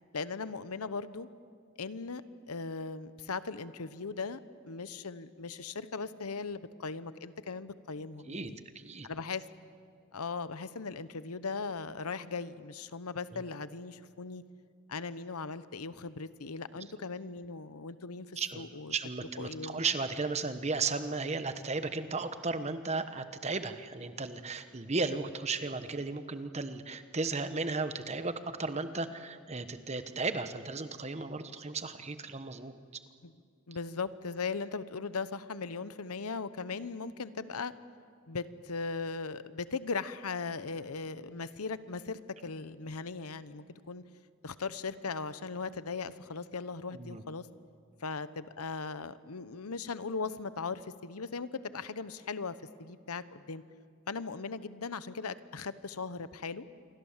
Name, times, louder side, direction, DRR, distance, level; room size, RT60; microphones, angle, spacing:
voice 1, 0.1-1.3 1.8-2.2 2.5-4.4 4.7-8.6 9.0-9.4 10.1-14.4 14.9-19.0 19.4-19.8 33.2-33.3 33.7-37.7 38.3-44.0 44.4-47.5 48.0-53.6 54.1-56.6, left 4 dB, 90° left, 14 dB, 0.9 m, -38 dB
voice 2, 8.3-9.1 13.3-13.4 16.8-16.9 18.4-18.6 18.9-32.8 47.0-47.2, right 3 dB, 30° right, 10 dB, 1.1 m, -35 dB
28.0 x 23.5 x 7.4 m, 2.2 s
head